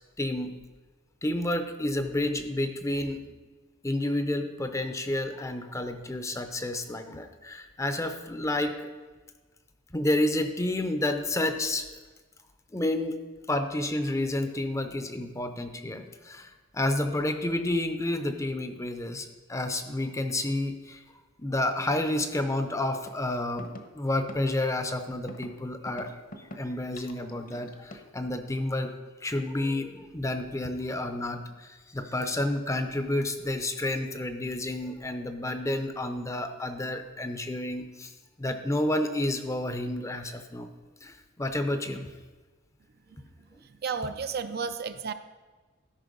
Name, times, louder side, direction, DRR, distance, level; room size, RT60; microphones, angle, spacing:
voice 1, 0.2-0.6 1.2-3.2 3.8-9.0 9.9-11.9 12.7-13.2 13.5-21.0 21.4-23.7 23.9-26.1 26.6-28.9 29.2-38.1 38.4-40.7 41.0-42.1, left 1 dB, 15° left, 8 dB, 0.6 m, -30 dB
sound 1, 23.1-23.2 23.6-23.8 24.3-24.4 25.3-25.5 25.9-26.6 27.0-28.1, left 1 dB, 45° left, 1.0 m, -42 dB
voice 2, 43.8-45.1, right 5 dB, 50° right, 10 dB, 0.5 m, -32 dB
13.0 x 5.5 x 5.3 m, 1.3 s
head